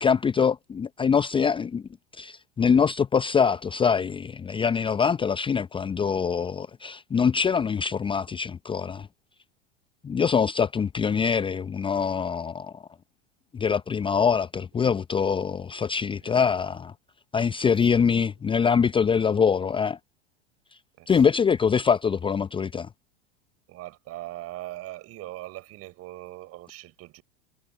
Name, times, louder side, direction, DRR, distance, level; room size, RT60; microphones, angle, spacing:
voice 1, 0.0-1.8 2.1-9.1 10.0-12.8 13.5-16.9 17.3-20.0 21.1-22.9, left 6 dB, 15° left, 0.8 m, -24 dB
voice 2, 17.7-18.3 21.0-21.4 23.7-27.2, right 16 dB, 40° right, 7.2 m, -41 dB
figure-of-eight pair, 85°, 37 cm